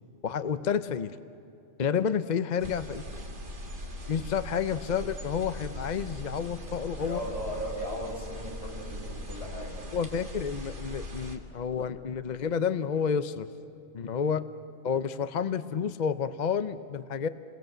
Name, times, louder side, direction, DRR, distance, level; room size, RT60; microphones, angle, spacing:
voice 1, 0.2-1.2 1.8-3.0 4.1-7.2 9.9-13.5 13.9-14.4 14.8-17.3, left 7 dB, 45° left, 12 dB, 0.7 m, -30 dB
sound 1, 2.6-11.4, equal, 45° right, 2.1 m, -40 dB
voice 2, 7.0-9.8, equal, 70° left, -3 dB, 7.2 m, -37 dB
29.0 x 23.0 x 8.0 m, 2.7 s
omnidirectional pair, 1.3 m